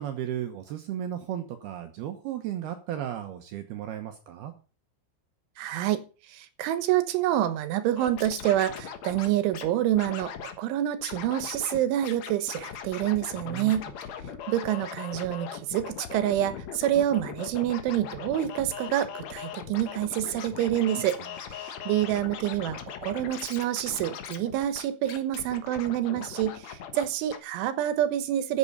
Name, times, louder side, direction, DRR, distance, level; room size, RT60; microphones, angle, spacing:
voice 1, 0.0-4.5 13.5-13.7 21.0-21.1, right 11 dB, 70° right, 7 dB, 2.6 m, -35 dB
voice 2, 5.6-6.0 6.3-13.9 14.5-21.2 21.6-28.6, right 12 dB, 85° right, 12 dB, 3.6 m, -27 dB
Scratching (performance technique), 7.9-9.7 9.9-10.5 11.0-11.8 12.0-27.0 27.3-27.4, left 8 dB, 75° left, 1.6 m, -39 dB
13.5 x 8.5 x 5.5 m, 0.36 s
omnidirectional pair, 5.3 m